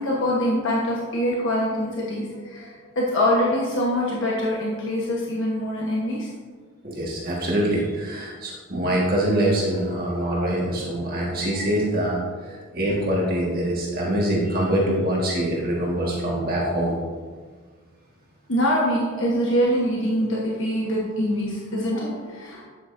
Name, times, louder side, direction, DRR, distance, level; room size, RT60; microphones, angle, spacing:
voice 1, 0.0-6.3 10.1-10.2 12.5-12.6 18.5-22.6, equal, 65° left, -4 dB, 1.2 m, -24 dB
voice 2, 6.8-17.0, right 1 dB, 45° right, -4 dB, 1.6 m, -24 dB
9.7 x 7.5 x 2.6 m, 1.5 s
head